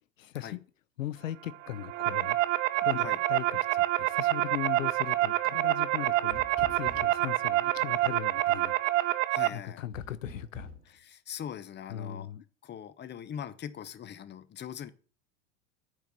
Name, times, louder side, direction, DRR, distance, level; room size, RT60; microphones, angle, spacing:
voice 1, 0.2-0.6 1.0-2.4 2.8-8.8 9.5-11.0 11.9-12.4, left 12 dB, 90° left, 0.7 m, -39 dB
sound 1, 1.6-9.5, right 16 dB, 70° right, 0.7 m, -27 dB
sound 2, 6.3-7.3 9.9-10.9, left 1 dB, 20° right, 2.6 m, -45 dB
voice 2, 9.3-9.8 10.9-12.3 12.6-14.9, left 9 dB, 25° left, 1.0 m, -41 dB
9.4 x 4.7 x 7.2 m
hypercardioid pair, 90°, 38 cm